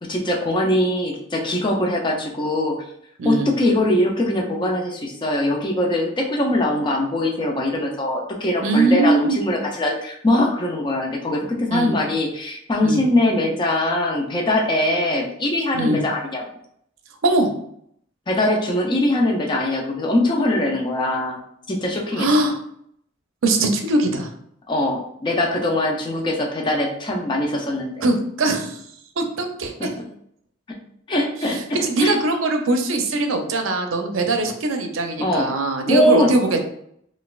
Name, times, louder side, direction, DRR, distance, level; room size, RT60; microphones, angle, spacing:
voice 1, 0.0-2.8 3.2-16.4 18.3-21.4 21.7-22.3 24.7-28.1 29.8-29.9 30.7-30.8 31.1-32.2 35.2-35.5 35.9-36.3, left 1 dB, 25° left, 0 dB, 0.5 m, -22 dB
voice 2, 3.2-3.5 8.6-9.4 11.7-11.9 12.8-13.0 15.7-16.0 17.2-17.5 22.2-22.6 23.4-24.3 28.0-28.8 29.2-29.9 31.5-36.6, right 2 dB, 80° right, 5 dB, 0.5 m, -21 dB
4.0 x 2.4 x 2.3 m, 0.70 s
head